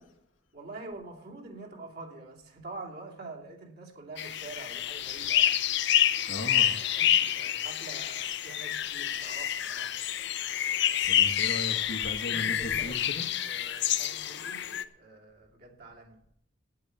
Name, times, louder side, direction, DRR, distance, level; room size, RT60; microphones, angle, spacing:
voice 1, 0.5-5.6 6.7-10.0 12.3-16.2, right 2 dB, 55° right, 2.5 m, -46 dB
sound 1, 4.2-14.8, left 11 dB, 65° left, 0.7 m, -28 dB
voice 2, 6.3-6.7 11.0-13.3, left 1 dB, 85° left, 1.6 m, -37 dB
9.1 x 8.5 x 8.2 m
head